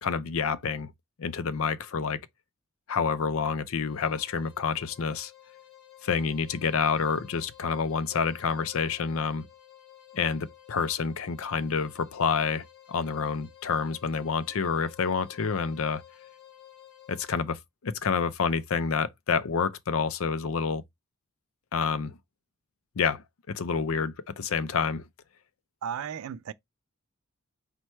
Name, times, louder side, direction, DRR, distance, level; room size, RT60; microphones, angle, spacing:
voice 1, 0.0-0.9 1.2-2.2 2.9-5.3 6.0-9.5 10.1-16.0 17.1-20.8 21.7-22.2 23.0-25.0, left 5 dB, 70° left, 0.5 m, -28 dB
sound 1, 3.8-17.5, left 11 dB, 50° left, 1.0 m, -53 dB
voice 2, 25.8-26.5, right 8 dB, 70° right, 0.3 m, -34 dB
4.4 x 2.2 x 4.3 m
head